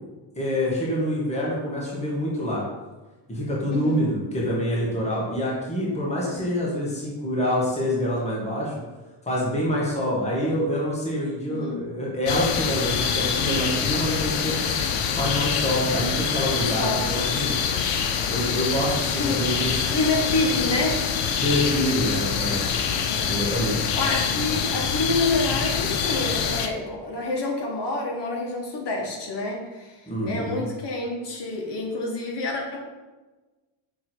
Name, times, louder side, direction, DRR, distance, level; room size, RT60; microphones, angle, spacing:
voice 1, 0.3-2.6 3.3-8.7 9.2-14.7 15.2-17.5 18.3-19.9 21.4-22.6 23.3-23.8 30.1-30.6, equal, 15° left, -6 dB, 1.6 m, -26 dB
voice 2, 3.7-4.0 6.3-6.5 11.5-11.8 16.6-17.1 19.2-19.4 19.9-21.1 23.1-23.5 24.0-32.8, left 2 dB, 55° left, 0 dB, 1.6 m, -28 dB
sound 1, 12.3-26.7, left 7 dB, 90° left, 0.7 m, -25 dB
6.2 x 3.6 x 4.6 m, 1.2 s
cardioid pair, 130°, 50 cm